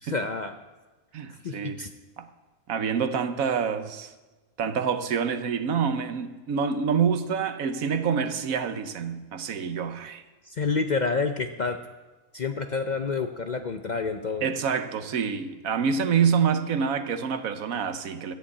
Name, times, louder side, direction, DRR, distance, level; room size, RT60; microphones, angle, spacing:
voice 1, 0.0-0.6 1.3-1.9 10.4-11.8 12.3-14.5, left 4 dB, 50° left, 0.5 m, -29 dB
voice 2, 1.1-1.8 2.2-2.3 2.7-4.1 4.6-10.2 14.4-18.3, right 6 dB, 75° right, 1.3 m, -27 dB
13.0 x 7.6 x 8.6 m
omnidirectional pair, 1.5 m